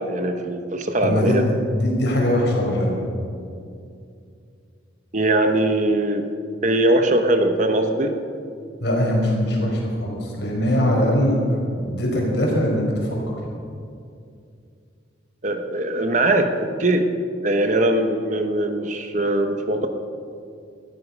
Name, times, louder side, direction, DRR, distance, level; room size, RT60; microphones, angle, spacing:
voice 1, 0.0-1.4 5.1-6.3 6.6-8.2 15.4-17.1 17.4-19.9, right 1 dB, 40° right, 6 dB, 1.1 m, -21 dB
voice 2, 1.0-1.4 1.8-3.0 8.8-13.3, left 1 dB, 65° left, -1 dB, 4.6 m, -21 dB
19.5 x 13.5 x 5.4 m, 2.4 s
head